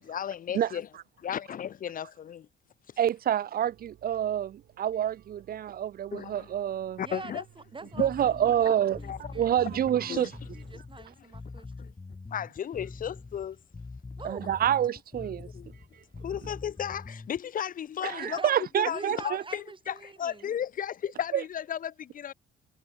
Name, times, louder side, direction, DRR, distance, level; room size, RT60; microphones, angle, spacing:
voice 1, 0.0-0.9 1.2-2.5 6.1-6.5 7.0-7.4 9.0-9.2 9.7-10.3 11.8-11.9 12.3-13.6 15.5-15.7 16.2-18.4 18.8-22.3, left 9 dB, 45° left, 0.5 m, -34 dB
voice 2, 3.0-7.0 8.0-10.3 14.2-15.5 18.0-19.4 21.3-21.4, right 10 dB, 50° right, 0.5 m, -27 dB
sound 1, 3.6-10.8, right 12 dB, 75° right, 7.2 m, -57 dB
voice 3, 7.0-9.9 10.5-11.9 14.2-14.6 18.1-18.5 18.9-20.5, right 4 dB, 25° right, 2.4 m, -45 dB
Bass guitar, 7.9-17.4, left 3 dB, 25° left, 3.5 m, -44 dB
cardioid pair, 90°, 20 cm